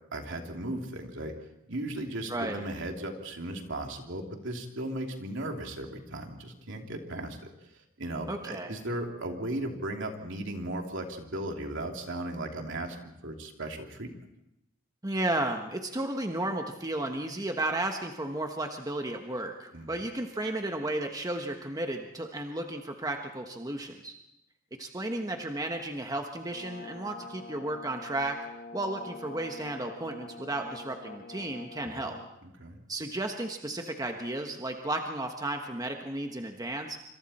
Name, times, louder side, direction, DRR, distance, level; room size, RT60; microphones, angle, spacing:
voice 1, 0.1-1.3 1.7-7.5 8.0-14.1 19.7-19.9 31.8-32.1 32.4-32.8, right 1 dB, 65° right, 3 dB, 3.0 m, -36 dB
voice 2, 2.3-2.6 8.3-8.8 15.0-24.1 24.7-28.4 28.7-32.2 32.9-37.0, right 2 dB, 20° right, 4 dB, 1.3 m, -33 dB
Brass instrument, 26.5-32.3, left 3 dB, 45° left, 1.4 m, -45 dB
27.0 x 26.5 x 4.3 m, 0.85 s
head